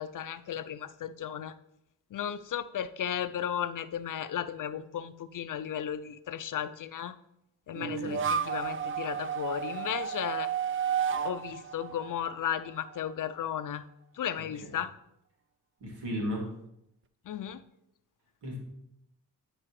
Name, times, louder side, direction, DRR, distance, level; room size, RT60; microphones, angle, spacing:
voice 1, 0.0-1.5 2.1-7.1 7.7-10.5 11.2-13.8 14.1-14.9 17.3-17.6, left 9 dB, 55° left, 13 dB, 0.5 m, -35 dB
sound 1, 7.7-13.0, right 8 dB, 35° right, 0.4 m, -32 dB
voice 2, 7.8-8.2 15.8-16.4 18.4-18.6, equal, 85° right, -3 dB, 2.6 m, -35 dB
11.0 x 4.8 x 3.2 m, 0.80 s
cardioid pair, 70°, 39 cm